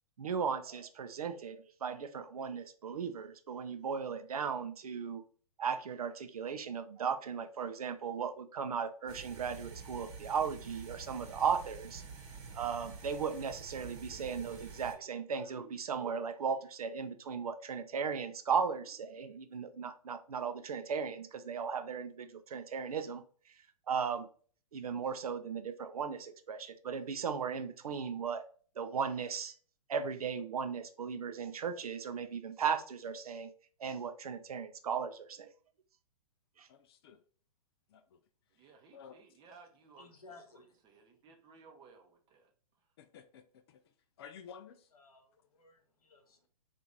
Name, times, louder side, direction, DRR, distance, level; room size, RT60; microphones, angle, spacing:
voice 1, 0.2-5.2 5.6-12.0 12.5-23.2 23.9-24.3 24.7-28.5 28.8-29.5 29.9-33.5 33.8-35.5 36.6-36.7, right 6 dB, 75° right, 0.5 m, -36 dB
sound 1, 9.1-14.9, right 4 dB, 50° right, 1.0 m, -48 dB
voice 2, 36.7-37.2 37.9-38.2 38.9-39.2 43.0-43.8 44.2-44.9, left 7 dB, 45° left, 0.4 m, -53 dB
voice 3, 38.5-42.5, right 4 dB, 25° right, 0.7 m, -59 dB
voice 4, 40.0-41.1 44.9-46.5, left 3 dB, 75° left, 0.9 m, -58 dB
3.0 x 2.5 x 3.7 m
figure-of-eight pair, 120°, 19 cm